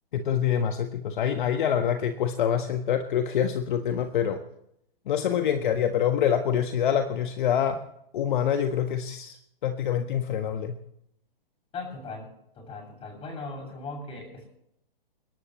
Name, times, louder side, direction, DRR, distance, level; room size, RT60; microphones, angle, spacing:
voice 1, 0.1-4.4 5.1-7.8 8.1-9.4 9.6-10.7, left 9 dB, 55° left, 6 dB, 1.5 m, -26 dB
voice 2, 11.7-12.3 12.6-14.5, left 3 dB, 20° left, 1 dB, 7.3 m, -38 dB
30.0 x 11.0 x 3.2 m, 0.76 s
hypercardioid pair, 130°, 29 cm